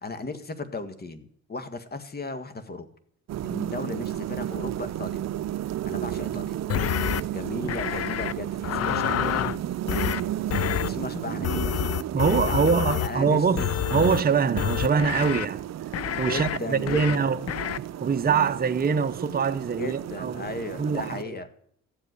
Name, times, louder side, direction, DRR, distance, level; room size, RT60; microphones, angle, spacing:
voice 1, 0.0-2.9 3.4-5.3 5.8-6.6 7.3-10.3 10.8-11.7 12.2-13.7 16.2-17.2 19.8-21.5, left 2 dB, 30° left, 1.8 m, -36 dB
sound 1, 3.3-21.2, right 12 dB, 60° right, 0.6 m, -33 dB
sound 2, 6.7-7.2 7.7-8.3 8.6-9.6 9.9-10.2 10.5-10.9 11.4-13.1 13.6-14.2 14.6-15.5 15.9-16.6 16.9-17.2 17.5-17.8, left 11 dB, 55° left, 0.6 m, -28 dB
voice 2, 12.1-15.6 16.2-17.6 18.0-20.5 20.8-21.4, right 5 dB, 30° right, 1.0 m, -24 dB
14.0 x 7.9 x 9.6 m
cardioid pair, 90°, 30 cm